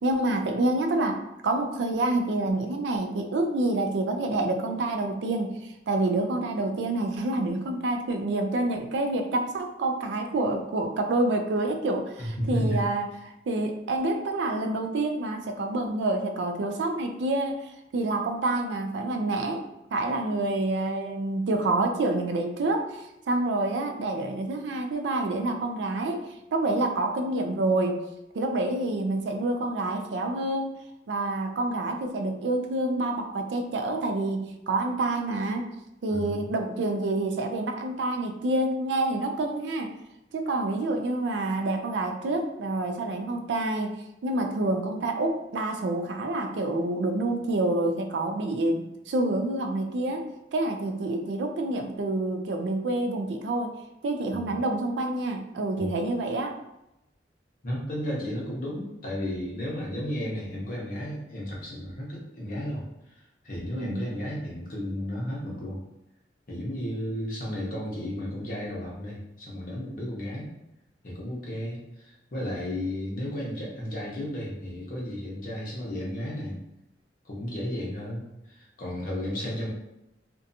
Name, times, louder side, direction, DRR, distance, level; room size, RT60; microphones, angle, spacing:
voice 1, 0.0-19.7 19.9-28.0 28.3-30.8 31.1-35.7 36.0-39.9 40.3-43.9 44.2-53.7 54.0-56.6 63.7-64.0, right 2 dB, 80° right, 5 dB, 0.4 m, -28 dB
voice 2, 12.2-12.8 36.1-36.5 54.3-54.6 55.8-55.9 57.6-65.8 66.5-70.5 71.0-76.6 77.2-79.7, equal, 50° left, -4 dB, 0.8 m, -33 dB
2.6 x 2.2 x 2.6 m, 0.87 s
head